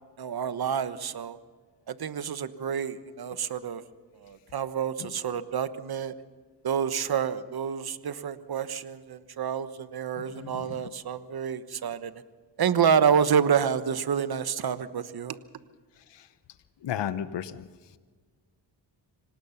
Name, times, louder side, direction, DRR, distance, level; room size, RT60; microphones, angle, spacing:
voice 1, 0.2-1.4 1.9-3.8 4.2-6.1 6.6-12.1 12.6-15.4, right 7 dB, 55° right, 13 dB, 1.2 m, -28 dB
voice 2, 10.2-10.9 16.1-16.3 16.8-17.7, left 9 dB, 75° left, 13 dB, 1.0 m, -34 dB
26.0 x 18.0 x 5.8 m, 1.5 s
cardioid pair, 75°, 43 cm